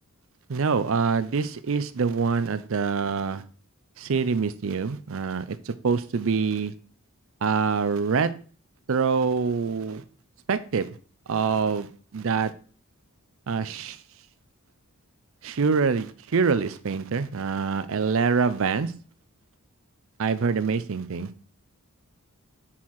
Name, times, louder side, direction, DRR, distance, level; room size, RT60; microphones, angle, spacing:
voice 1, 0.5-3.4 4.0-6.7 7.4-8.3 8.9-10.0 10.5-10.9 11.3-12.5 13.5-14.0 15.4-18.9 20.2-21.3, right 5 dB, 65° right, 0.5 m, -25 dB
5.7 x 4.6 x 4.3 m
head